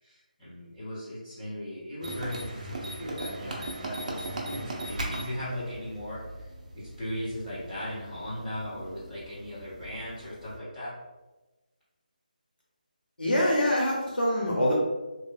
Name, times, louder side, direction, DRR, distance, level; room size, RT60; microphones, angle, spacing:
voice 1, 0.0-6.5 6.7-10.9, equal, 10° left, -14 dB, 1.4 m, -38 dB
sound 1, 2.0-10.6, right 1 dB, 50° right, 0.6 m, -39 dB
voice 2, 13.2-14.7, equal, 85° left, -4 dB, 0.7 m, -25 dB
3.0 x 2.6 x 2.3 m, 1.1 s
figure-of-eight pair, 155°, 5 cm